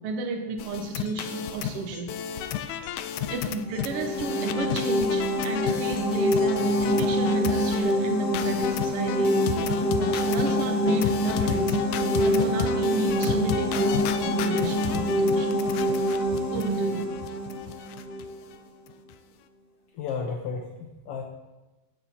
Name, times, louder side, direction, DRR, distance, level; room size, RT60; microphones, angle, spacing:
voice 1, 0.0-2.1 3.3-9.5 10.0-11.8 12.2-15.5 16.5-17.1, right 3 dB, 60° right, 4 dB, 2.0 m, -32 dB
sound 1, 0.6-7.9 8.3-18.3 18.5-18.6 18.9-19.1, left 10 dB, 90° left, 2.0 m, -33 dB
sound 2, 3.7-18.3, equal, 5° left, 1.5 m, -26 dB
voice 2, 19.9-21.2, left 5 dB, 65° left, 2 dB, 1.7 m, -33 dB
16.0 x 12.0 x 2.9 m, 1.1 s
omnidirectional pair, 3.4 m